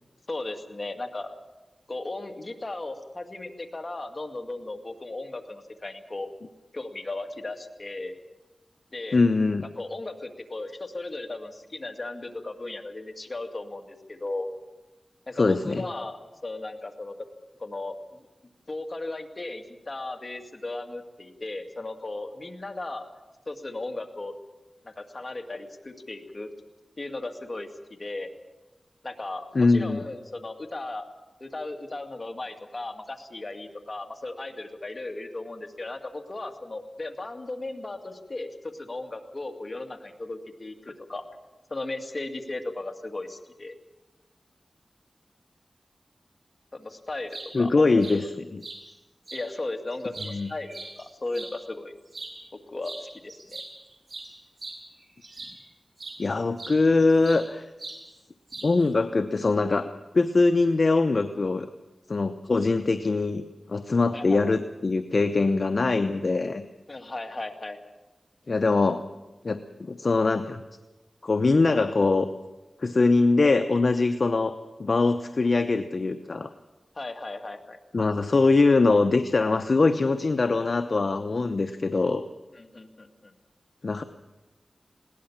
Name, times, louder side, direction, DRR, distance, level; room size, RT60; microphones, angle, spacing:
voice 1, 0.3-1.3 1.9-6.3 6.7-8.1 8.9-9.2 9.8-14.5 15.3-17.2 17.6-18.0 18.7-23.1 23.5-24.3 24.8-26.5 27.0-28.3 29.0-31.1 31.4-41.2 41.7-43.7 46.7-48.3 49.3-51.9 52.7-53.6 64.1-64.4 66.9-67.8 76.9-77.8 82.5-83.3, left 2 dB, 45° left, 5 dB, 2.2 m, -36 dB
voice 2, 9.1-9.6 15.4-15.8 29.5-30.0 47.5-48.2 48.5-48.6 50.3-50.5 56.2-57.7 58.6-61.7 62.1-63.4 63.7-66.6 68.5-69.0 69.4-70.6 71.2-72.3 72.8-76.5 77.9-82.2 83.8-84.0, left 3 dB, 60° left, 8 dB, 0.8 m, -22 dB
sound 1, 47.1-47.5 48.0-48.2 48.6-48.8 49.3-49.4 49.9-51.5 52.1-52.4 52.8-53.0 53.3-55.6 56.0-56.2 56.6-57.5 57.8-58.0 58.5-58.9, right 2 dB, 55° right, 5.4 m, -40 dB
20.5 x 18.0 x 7.3 m, 1.1 s
wide cardioid pair, 65°, 0 cm